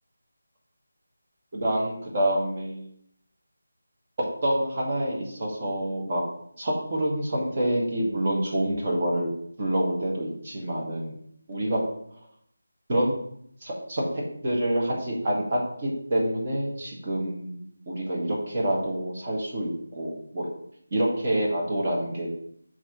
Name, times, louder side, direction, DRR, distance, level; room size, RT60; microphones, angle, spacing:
voice 1, 1.5-2.8 4.4-6.2 6.6-9.3 9.6-11.1 11.5-11.8 12.9-13.1 13.6-20.5 20.9-22.3, right 1 dB, 35° right, -3 dB, 2.0 m, -27 dB
7.2 x 3.2 x 5.4 m, 0.69 s
figure-of-eight pair, 160°, 0 cm